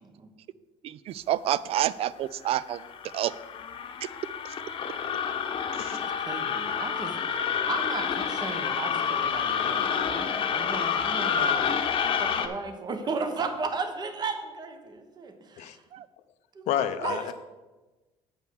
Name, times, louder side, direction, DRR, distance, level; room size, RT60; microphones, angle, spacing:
voice 1, 0.8-2.8 3.1-3.3 4.4-4.5 5.7-6.0 15.9-16.1, right 12 dB, 55° right, 0.4 m, -29 dB
sound 1, 2.5-12.5, left 7 dB, 45° left, 0.9 m, -29 dB
voice 2, 5.9-11.7 12.2-15.8 16.5-16.6 17.0-17.3, right 4 dB, 35° right, 1.1 m, -35 dB
voice 3, 16.7-17.3, left 10 dB, 75° left, 0.6 m, -30 dB
8.4 x 5.4 x 6.2 m
cardioid pair, 110°, 12 cm